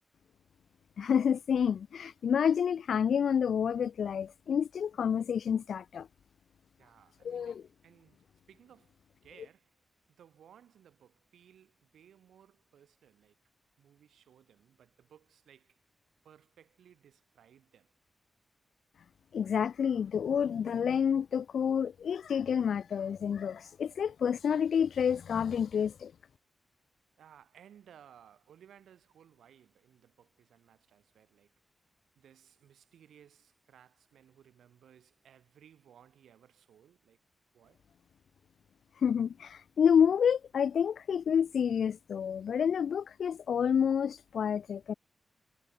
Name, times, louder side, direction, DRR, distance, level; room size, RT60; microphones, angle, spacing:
voice 1, 1.0-6.1 7.2-7.6 19.3-26.1 39.0-44.9, left 7 dB, 80° left, 0.5 m, -29 dB
voice 2, 6.8-9.8 10.1-13.4 13.8-15.8 16.2-17.9 27.2-31.5 32.2-37.2 37.5-37.8, right 9 dB, 90° right, 5.3 m, -60 dB
supercardioid pair, 45°, 0 cm